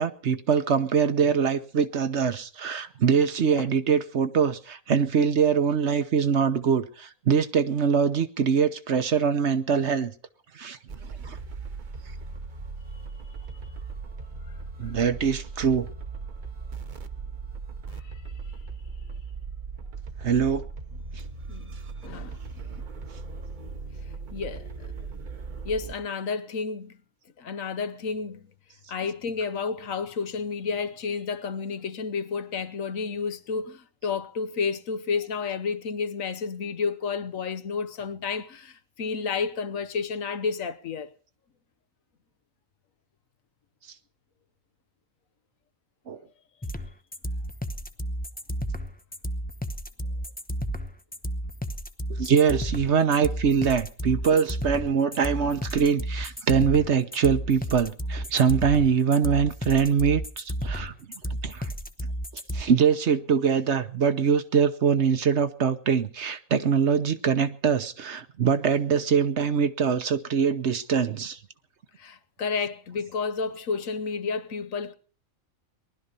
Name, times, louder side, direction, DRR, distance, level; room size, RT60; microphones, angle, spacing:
voice 1, 0.0-10.1 10.5-10.8 11.2-11.4 14.8-15.9 20.2-20.6 21.1-21.2 46.1-46.2 52.2-60.9 61.4-61.7 62.5-71.4, right 6 dB, 55° right, 1.2 m, -23 dB
sound 1, 10.9-26.0, right 4 dB, 40° right, 1.0 m, -38 dB
voice 2, 22.0-22.4 24.3-24.7 25.6-26.9 27.4-28.4 28.9-41.1 72.0-74.9, left 5 dB, 75° left, 1.4 m, -31 dB
sound 2, 46.6-62.6, equal, 10° left, 0.6 m, -32 dB
19.5 x 12.0 x 5.5 m
omnidirectional pair, 1.4 m